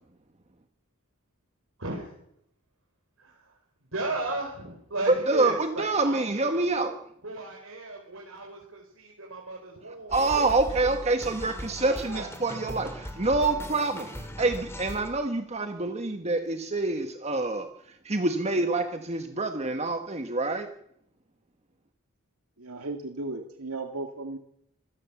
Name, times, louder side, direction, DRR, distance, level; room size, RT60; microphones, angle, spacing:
voice 1, 1.8-2.1 3.2-3.6 3.9-6.6 7.2-11.1 11.4-12.3, right 2 dB, 65° right, 0 dB, 4.8 m, -36 dB
voice 2, 5.3-6.9 10.1-17.7 18.0-20.7, right 3 dB, 30° right, 6 dB, 1.5 m, -27 dB
sound 1, 10.1-15.1, equal, 10° left, 2.8 m, -39 dB
voice 3, 22.6-24.4, right 2 dB, 85° right, 4 dB, 2.1 m, -35 dB
26.0 x 17.0 x 7.2 m, 0.75 s
head